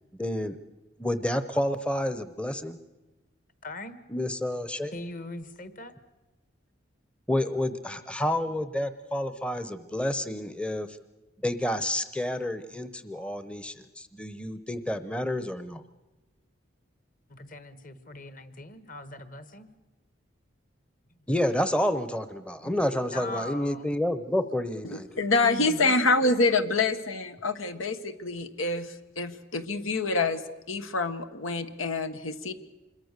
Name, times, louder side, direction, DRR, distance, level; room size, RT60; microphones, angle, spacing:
voice 1, 0.2-0.6 1.0-2.8 4.1-4.9 7.3-11.0 11.4-15.8 21.3-25.2, left 1 dB, 5° left, 12 dB, 0.8 m, -29 dB
voice 2, 3.6-4.0 4.9-5.9 17.3-19.7 22.6-23.9 25.4-26.1, left 1 dB, 45° left, 12 dB, 1.5 m, -40 dB
voice 3, 24.9-30.4 30.7-32.5, left 3 dB, 90° left, 9 dB, 1.5 m, -26 dB
26.5 x 22.0 x 6.7 m, 1.1 s
head